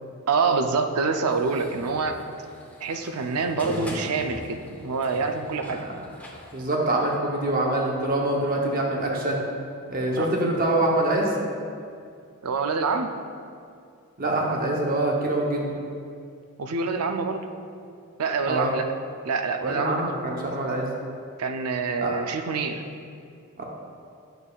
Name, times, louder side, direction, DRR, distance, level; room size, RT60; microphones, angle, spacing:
voice 1, 0.3-2.2 2.8-5.8 10.2-10.3 12.4-13.1 16.6-17.5 18.2-18.9 19.2-20.0 20.3-20.5 21.4-22.8, right 4 dB, 85° right, 6 dB, 0.5 m, -26 dB
sound 1, 1.3-6.6, left 1 dB, 5° left, 0.6 m, -40 dB
voice 2, 6.5-9.4 9.9-11.3 14.2-15.8 18.5-18.7 19.6-20.9 22.0-22.2 23.6-23.7, right 1 dB, 40° right, -1 dB, 0.8 m, -25 dB
8.9 x 6.5 x 2.4 m, 2.4 s
head